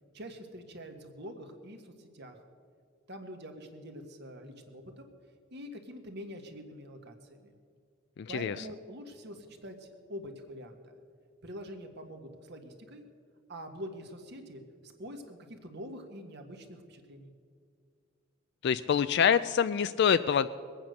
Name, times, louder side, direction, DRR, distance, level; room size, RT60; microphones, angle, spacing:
voice 1, 0.1-2.4 3.1-5.1 5.5-7.5 8.3-10.9 11.4-13.0 13.5-17.3, equal, 55° right, 5 dB, 1.6 m, -45 dB
voice 2, 8.2-8.6 18.6-20.5, left 7 dB, 55° left, 13 dB, 0.3 m, -25 dB
21.5 x 8.9 x 6.5 m, 2.2 s
head